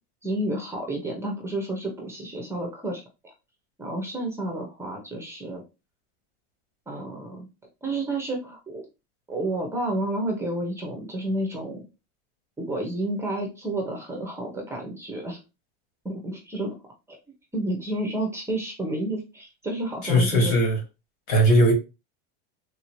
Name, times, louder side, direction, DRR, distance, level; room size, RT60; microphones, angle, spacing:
voice 1, 0.2-3.3 3.8-5.6 6.9-7.5 7.8-8.8 9.3-11.8 12.6-15.4 16.0-16.7 17.1-17.2 17.5-20.5, right 1 dB, 10° right, 0.7 m, -30 dB
voice 2, 20.0-20.8 21.3-21.7, equal, 60° left, 1.9 m, -19 dB
3.5 x 2.7 x 3.0 m
supercardioid pair, 145°, 30 cm